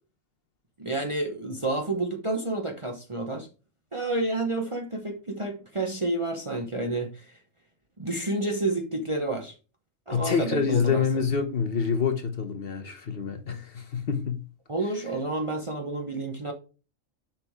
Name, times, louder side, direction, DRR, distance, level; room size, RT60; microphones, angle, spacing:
voice 1, 0.8-3.5 3.9-7.3 8.0-9.5 10.1-11.0 13.5-13.6 14.7-16.5, right 2 dB, 25° right, 0.8 m, -30 dB
voice 2, 10.1-14.4, left 6 dB, 50° left, 1.0 m, -27 dB
6.9 x 5.5 x 3.5 m
omnidirectional pair, 1.4 m